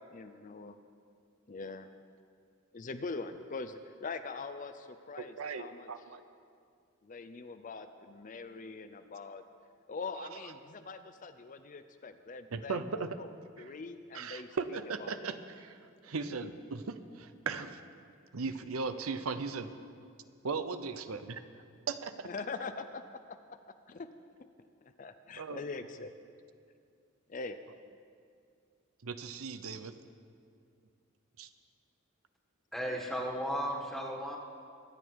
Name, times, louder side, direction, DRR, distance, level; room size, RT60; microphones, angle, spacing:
voice 1, 0.1-0.8 1.5-1.9 2.7-5.9 7.0-9.4 9.9-13.3 13.6-14.5 15.0-15.3 22.2-23.0 23.3-23.4 23.9-24.1 25.0-26.1 27.3-27.6, left 4 dB, 40° left, 10 dB, 0.5 m, -42 dB
voice 2, 5.2-6.2 10.1-10.4 12.5-13.2 13.6-13.8 14.1-17.8 18.3-19.7 20.4-21.4 21.9-22.3 25.4-25.6 29.0-29.9 31.4-31.5, right 4 dB, 85° right, 10 dB, 0.7 m, -38 dB
voice 3, 32.7-34.4, equal, ahead, -1 dB, 1.6 m, -35 dB
24.0 x 8.9 x 4.7 m, 2.3 s
head